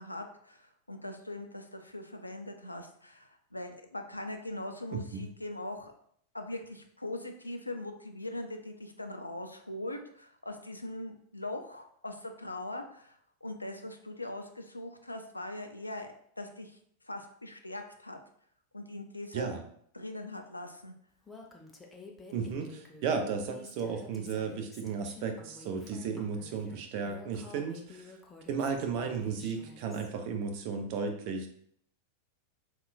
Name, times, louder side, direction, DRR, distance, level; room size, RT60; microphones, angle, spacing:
voice 1, 0.0-5.9 6.3-16.8 17.0-18.2 18.7-19.6 19.9-20.9, left 1 dB, 85° left, 5 dB, 0.3 m, -41 dB
voice 2, 4.9-5.3 19.3-19.6 22.3-28.1 28.5-31.5, right 5 dB, 45° right, 4 dB, 0.4 m, -34 dB
Female speech woman speaking, 21.3-30.1, left 3 dB, 15° left, 0.4 m, -51 dB
3.6 x 2.2 x 2.2 m, 0.65 s
figure-of-eight pair, 90°, 0 cm